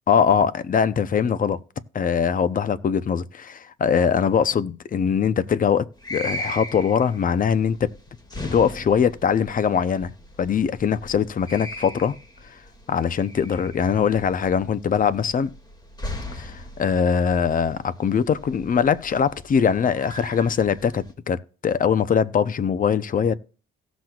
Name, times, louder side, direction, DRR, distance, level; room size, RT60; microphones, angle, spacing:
voice 1, 0.1-1.6 1.9-7.9 8.4-10.1 10.4-12.1 12.9-15.5 16.3-23.3, left 7 dB, 45° left, 0.7 m, -22 dB
sound 1, 6.0-21.1, left 1 dB, 20° left, 2.2 m, -39 dB
17.5 x 6.1 x 2.4 m
cardioid pair, 90°, 20 cm